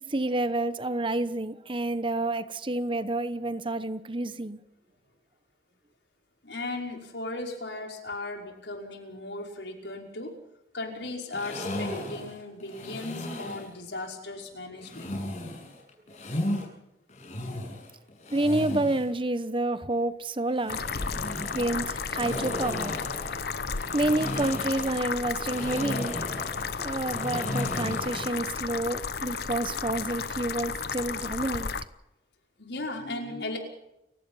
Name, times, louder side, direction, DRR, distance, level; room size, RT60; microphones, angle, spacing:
voice 1, 0.0-4.6 18.3-20.8 21.5-23.0 23.9-26.1 26.8-31.7, right 2 dB, 30° right, 1.0 m, -29 dB
voice 2, 6.4-10.3 10.7-15.2 32.6-33.6, left 2 dB, 80° left, 5.4 m, -37 dB
sound 1, 11.3-13.7 14.8-16.6 17.1-19.1 20.5-28.4, left 1 dB, 40° left, 7.8 m, -35 dB
sound 2, 20.7-31.8, left 5 dB, 60° left, 0.9 m, -33 dB
29.5 x 16.5 x 5.6 m
head